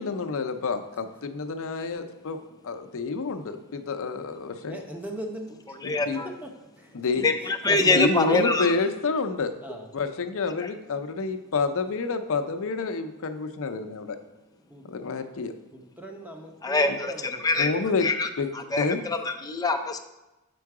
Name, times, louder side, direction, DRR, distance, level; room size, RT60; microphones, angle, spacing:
voice 1, 0.0-2.4 2.6-4.8 5.8-6.2 6.9-7.2 7.9-9.5 9.9-14.2 14.9-15.5 16.9-17.0 17.6-18.1 18.4-18.5 18.8-19.0, left 4 dB, 65° left, 8 dB, 0.6 m, -28 dB
voice 2, 4.7-5.8 6.4-6.5 6.8-6.9 7.4-8.7 9.6-9.9 14.7-14.8 15.7-17.9 18.7-18.9, equal, 5° right, 2 dB, 0.8 m, -38 dB
voice 3, 5.8-6.3 7.2-8.7 10.6-10.7 16.6-17.7 18.0-18.3 18.5-20.0, left 3 dB, 15° left, 5 dB, 0.5 m, -25 dB
6.9 x 4.6 x 4.7 m, 1.0 s
head